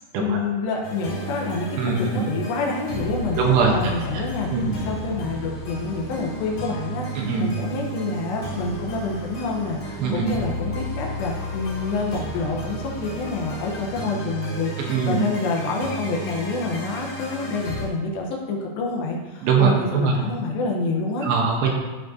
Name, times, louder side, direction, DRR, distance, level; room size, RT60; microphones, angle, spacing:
voice 1, 0.1-3.4 3.7-21.3, left 3 dB, 75° left, 0 dB, 2.9 m, -28 dB
sound 1, 0.8-17.9, equal, 50° left, 3.5 m, -33 dB
voice 2, 1.8-2.2 3.4-3.7 4.1-4.2 4.5-4.8 7.2-7.5 10.0-10.3 14.8-15.2 19.4-20.2 21.2-21.7, right 5 dB, 75° right, -1 dB, 2.9 m, -21 dB
14.5 x 5.2 x 2.7 m, 1.2 s
omnidirectional pair, 5.5 m